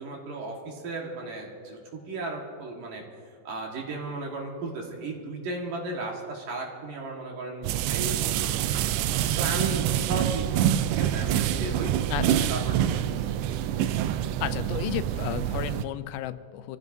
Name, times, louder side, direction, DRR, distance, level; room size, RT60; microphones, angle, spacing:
voice 1, 0.0-3.0 3.4-8.9 9.4-11.9 12.5-13.1, right 2 dB, 60° right, -1 dB, 2.8 m, -35 dB
sound 1, 7.6-15.8, right 11 dB, 85° right, 2.6 m, -26 dB
voice 2, 12.1-12.5 14.4-16.8, left 12 dB, 85° left, 12 dB, 2.7 m, -33 dB
26.0 x 15.0 x 2.7 m, 2.1 s
omnidirectional pair, 4.9 m